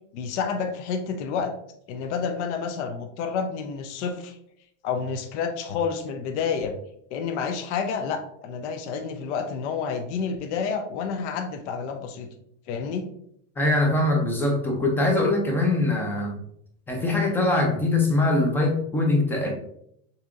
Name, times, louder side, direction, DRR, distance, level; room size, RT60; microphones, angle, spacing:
voice 1, 0.1-1.5 1.9-4.4 4.8-6.7 7.1-12.3 12.7-13.0, left 6 dB, 65° left, 5 dB, 0.7 m, -29 dB
voice 2, 13.6-16.4 16.9-19.5, left 2 dB, 5° left, 1 dB, 0.4 m, -22 dB
6.7 x 2.8 x 2.4 m, 0.72 s
supercardioid pair, 160°, 37 cm